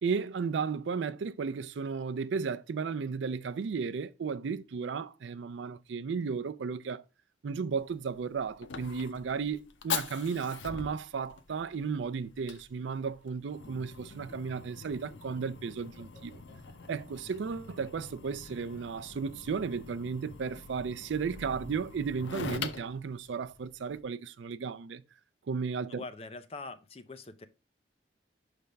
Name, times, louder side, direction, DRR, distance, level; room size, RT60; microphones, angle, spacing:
voice 1, 0.0-7.0 7.4-16.4 16.9-25.0 25.5-26.0, right 5 dB, 80° right, 0.4 m, -34 dB
Fire, 7.8-24.0, left 6 dB, 90° left, 0.7 m, -43 dB
Laughter, 13.6-19.6, equal, 60° left, 1.4 m, -58 dB
voice 2, 25.9-27.5, left 3 dB, 30° left, 0.5 m, -43 dB
5.6 x 3.4 x 5.1 m
head